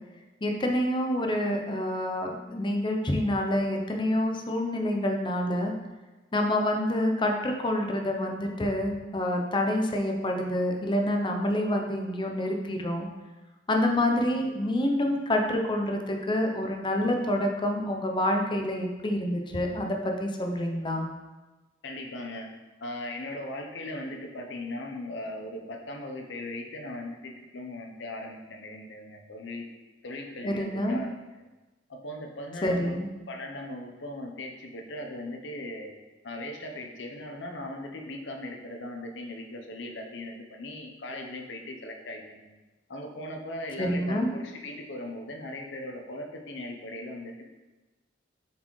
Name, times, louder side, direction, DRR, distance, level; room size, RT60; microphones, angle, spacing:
voice 1, 0.4-5.7 6.3-13.1 13.7-21.1 30.4-31.0 32.6-33.1 43.8-44.3, left 1 dB, 25° left, 2 dB, 0.6 m, -27 dB
voice 2, 21.8-22.5 22.8-29.7 30.0-31.1 31.9-33.0 33.3-35.9 36.2-42.5 42.9-47.4, left 1 dB, 65° left, 2 dB, 0.8 m, -38 dB
7.0 x 4.2 x 3.2 m, 1.2 s
head